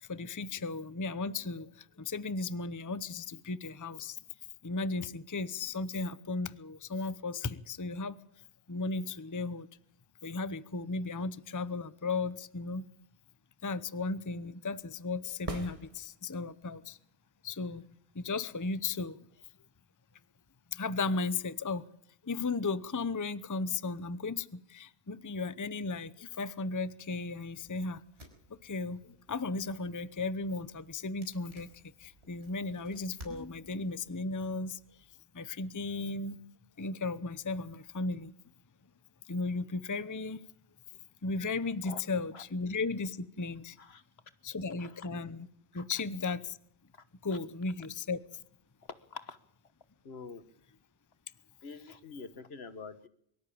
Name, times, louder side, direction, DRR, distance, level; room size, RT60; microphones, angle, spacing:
voice 1, 0.0-4.2 4.6-8.2 8.7-9.7 10.2-12.8 13.6-17.0 17.4-17.8 18.1-19.2 20.7-21.8 22.2-28.0 28.5-31.7 32.0-34.8 35.3-36.4 36.8-38.3 39.3-40.4 41.2-43.8 44.4-45.5 45.7-46.6 47.2-48.2, left 3 dB, 20° left, 0.7 m, -35 dB
sound 1, 15.4-16.6 20.5-20.6, right 2 dB, 30° right, 2.0 m, -41 dB
sound 2, 27.6-35.1, equal, 75° right, 5.2 m, -57 dB
voice 2, 44.8-45.1 45.7-45.8 47.3-47.4 48.9-49.4 50.0-50.4 51.6-53.1, left 5 dB, 70° left, 1.6 m, -46 dB
23.5 x 13.0 x 8.6 m
omnidirectional pair, 1.1 m